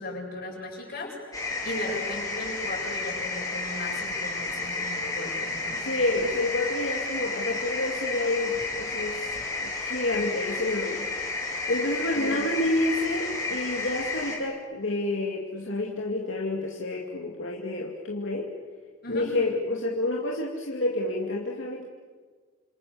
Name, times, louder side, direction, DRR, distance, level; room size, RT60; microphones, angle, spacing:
voice 1, 0.0-5.9 12.1-12.5 19.0-19.3, left 1 dB, 50° left, -1 dB, 7.9 m, -37 dB
sound 1, 1.3-14.4, left 3 dB, 15° left, 4.8 m, -32 dB
voice 2, 5.8-9.2 9.6-11.1 11.7-18.5 19.1-21.9, left 2 dB, 70° left, -1 dB, 2.6 m, -29 dB
29.5 x 27.5 x 7.1 m, 1.5 s
head